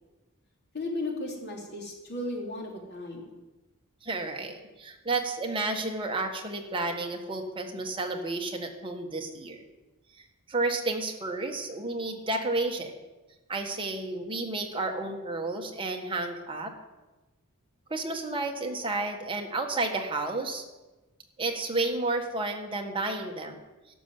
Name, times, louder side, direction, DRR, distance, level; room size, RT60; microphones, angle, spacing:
voice 1, 0.7-3.3, left 2 dB, 50° left, 0 dB, 3.2 m, -35 dB
voice 2, 4.0-9.6 10.5-12.9 13.5-16.7 17.9-20.6 21.4-23.6, right 2 dB, 25° right, 2 dB, 1.5 m, -31 dB
12.5 x 6.9 x 9.4 m, 1.1 s
head